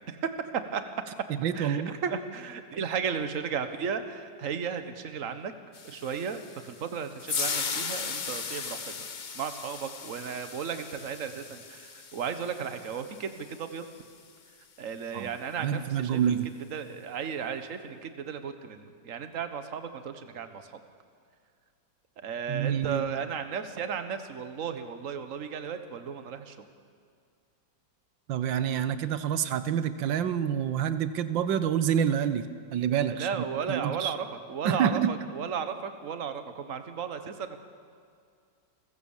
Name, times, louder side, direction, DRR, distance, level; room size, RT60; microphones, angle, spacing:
voice 1, 0.1-0.8 1.5-5.5 5.8-9.1 9.3-13.9 14.8-16.4 16.7-20.8 22.2-26.7 33.1-37.6, right 7 dB, 50° right, 9 dB, 1.5 m, -35 dB
voice 2, 1.3-1.9 15.1-15.3 15.6-16.5 22.5-23.2 28.3-34.1 34.6-35.1, right 9 dB, 85° right, 12 dB, 1.7 m, -28 dB
sound 1, 5.7-14.0, left 5 dB, 40° left, 0.7 m, -37 dB
29.5 x 15.5 x 7.3 m, 2.3 s
omnidirectional pair, 2.0 m